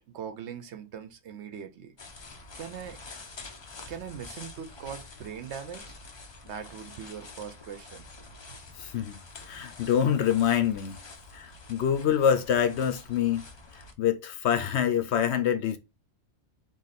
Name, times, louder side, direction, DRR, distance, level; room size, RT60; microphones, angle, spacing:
voice 1, 0.0-1.9 2.6-3.0 3.9-5.8 6.4-8.1, right 8 dB, 65° right, 0.9 m, -40 dB
sound 1, 2.0-13.9, left 3 dB, 45° left, 0.3 m, -47 dB
voice 2, 8.8-11.0 11.3-13.5 13.7-15.8, left 9 dB, 65° left, 0.8 m, -26 dB
3.9 x 2.6 x 4.0 m
omnidirectional pair, 1.3 m